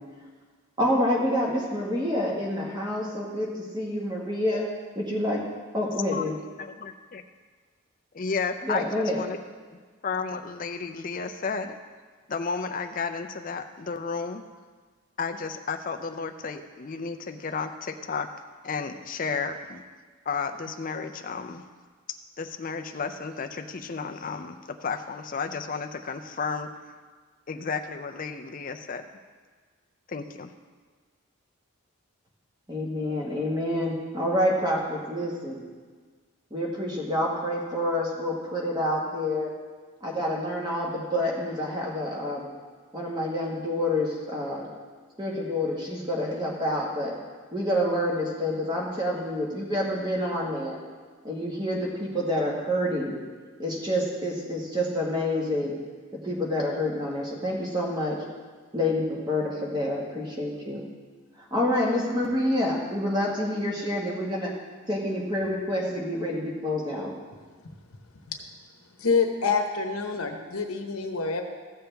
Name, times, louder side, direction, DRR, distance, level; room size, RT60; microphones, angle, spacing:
voice 1, 0.8-4.6 5.0-5.4 5.7-6.3 8.6-9.2 32.7-35.6 36.5-39.5 40.0-42.5 42.9-44.7 45.2-47.1 47.5-50.8 51.2-53.2 53.6-55.7 56.2-58.2 58.7-60.8 61.4-64.5 64.9-67.1, left 1 dB, 20° right, -3 dB, 1.5 m, -28 dB
voice 2, 6.1-7.2 8.2-9.4 10.0-11.8 12.3-14.4 15.2-18.3 18.6-19.8 20.3-21.6 22.4-26.7 27.5-29.1 30.1-30.5, left 5 dB, 40° left, 6 dB, 0.5 m, -32 dB
voice 3, 69.0-71.4, left 5 dB, 80° left, 3 dB, 1.0 m, -26 dB
14.5 x 7.0 x 3.4 m, 1.5 s
head